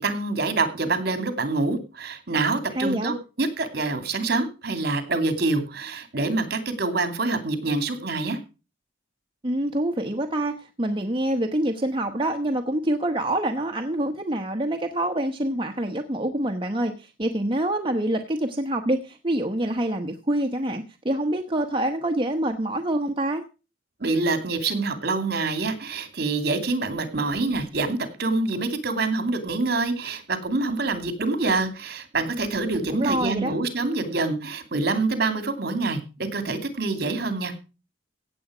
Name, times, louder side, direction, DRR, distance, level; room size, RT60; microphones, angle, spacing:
voice 1, 0.0-8.4 24.0-37.5, right 3 dB, 55° right, 9 dB, 2.6 m, -26 dB
voice 2, 2.7-3.1 9.4-23.4 32.7-33.5, right 1 dB, 25° right, 4 dB, 1.1 m, -26 dB
16.5 x 8.0 x 5.0 m, 0.32 s
head